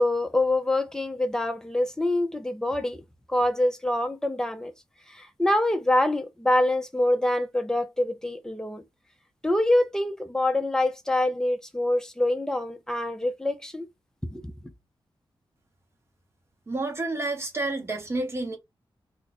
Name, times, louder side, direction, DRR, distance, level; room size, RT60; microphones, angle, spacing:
voice 1, 0.0-3.0 3.3-4.7 5.1-8.8 9.4-13.9 14.2-14.5, left 1 dB, 5° left, 0.6 m, -25 dB
voice 2, 16.7-18.6, right 2 dB, 25° right, 1.0 m, -29 dB
2.5 x 2.3 x 4.1 m
wide cardioid pair, 125°, 10 cm